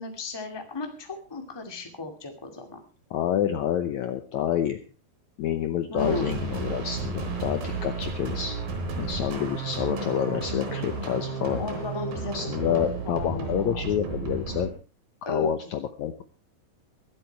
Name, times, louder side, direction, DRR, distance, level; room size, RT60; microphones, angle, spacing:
voice 1, 0.0-2.8 5.9-6.4 11.6-14.1 15.2-15.5, left 3 dB, 10° left, 4 dB, 1.3 m, -35 dB
voice 2, 3.1-4.8 5.4-8.5 9.0-11.7 12.3-14.7 15.3-16.2, left 10 dB, 75° left, 9 dB, 1.8 m, -28 dB
sound 1, 6.0-14.7, right 4 dB, 75° right, 5.3 m, -32 dB
23.0 x 7.9 x 4.6 m, 0.36 s
omnidirectional pair, 4.2 m